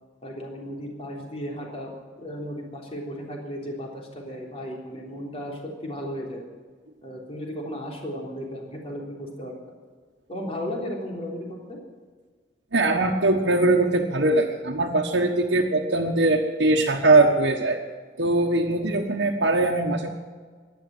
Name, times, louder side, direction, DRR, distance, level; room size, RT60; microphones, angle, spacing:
voice 1, 0.2-6.4 7.0-9.5 10.3-11.8, equal, 35° left, -1 dB, 3.6 m, -35 dB
voice 2, 12.7-17.8 18.2-20.1, right 2 dB, 90° right, -1 dB, 1.4 m, -21 dB
16.5 x 11.0 x 7.8 m, 1.5 s
head